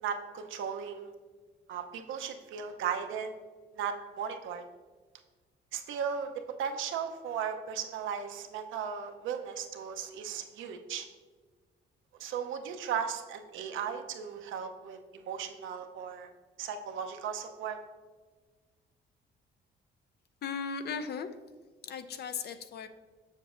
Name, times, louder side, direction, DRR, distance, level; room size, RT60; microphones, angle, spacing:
voice 1, 0.0-1.1 1.7-3.3 3.7-4.6 5.7-11.1 12.2-16.3 16.6-17.8, right 7 dB, 80° right, 6 dB, 0.7 m, -36 dB
voice 2, 20.4-21.3 21.8-22.9, left 6 dB, 55° left, 10 dB, 0.5 m, -37 dB
7.2 x 6.7 x 2.5 m, 1.4 s
cardioid pair, 90°, 20 cm